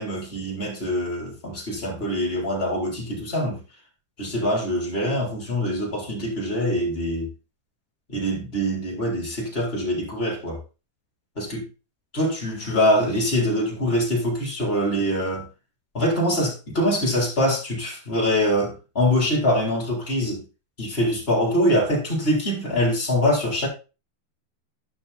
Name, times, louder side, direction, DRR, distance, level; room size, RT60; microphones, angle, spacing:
voice 1, 0.0-3.6 4.2-7.3 8.1-10.6 11.4-11.6 12.1-15.5 15.9-20.4 20.8-23.7, equal, 15° left, 3.7 m, -24 dB
12.0 x 5.6 x 4.2 m
omnidirectional pair, 4.7 m